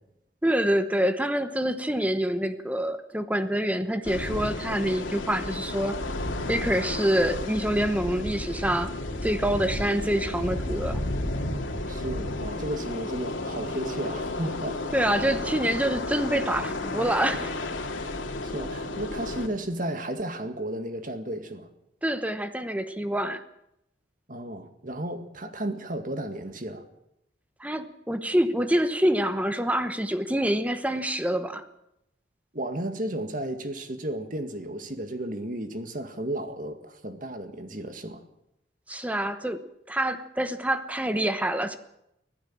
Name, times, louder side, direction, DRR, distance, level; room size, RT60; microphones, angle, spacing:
voice 1, 0.4-6.0 6.5-11.0 14.9-17.6 22.0-23.4 27.6-31.6 38.9-39.6 39.9-41.8, right 1 dB, 5° right, 1.0 m, -26 dB
sound 1, 4.0-19.5, left 2 dB, 85° left, 2.7 m, -32 dB
voice 2, 11.9-14.8 18.4-21.7 24.3-26.8 32.5-38.2, right 1 dB, 45° right, 1.9 m, -33 dB
24.5 x 15.0 x 7.4 m
head